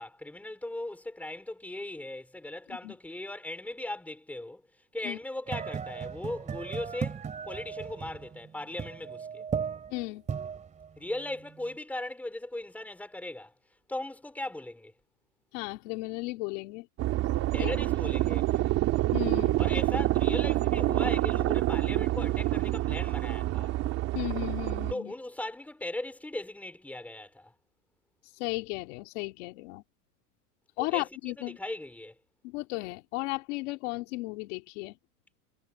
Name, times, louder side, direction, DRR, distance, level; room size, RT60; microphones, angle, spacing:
voice 1, 0.0-4.6 4.9-9.4 11.0-13.5 13.9-14.9 17.5-18.8 19.6-23.7 24.9-27.5 30.8-32.2, left 1 dB, 5° left, 4.7 m, -38 dB
sound 1, 5.5-11.8, right 7 dB, 15° right, 3.2 m, -37 dB
voice 2, 9.9-10.2 15.5-16.9 17.6-17.7 19.1-19.7 24.1-25.1 28.4-29.8 30.8-31.6 32.4-34.9, left 22 dB, 55° left, 2.6 m, -35 dB
sound 2, 17.0-24.9, right 16 dB, 35° right, 2.2 m, -27 dB
supercardioid pair, 160°, 45 cm